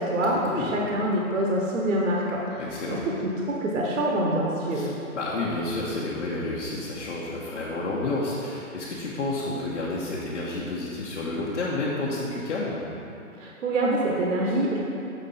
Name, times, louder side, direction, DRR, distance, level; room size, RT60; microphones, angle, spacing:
voice 1, 0.0-2.6 2.9-3.0 3.5-4.9 13.4-14.8, right 1 dB, 60° right, -2 dB, 1.0 m, -25 dB
voice 2, 2.6-3.0 4.7-12.8, left 2 dB, 55° left, -6 dB, 1.1 m, -30 dB
7.0 x 5.4 x 4.2 m, 2.7 s
hypercardioid pair, 160°, 43 cm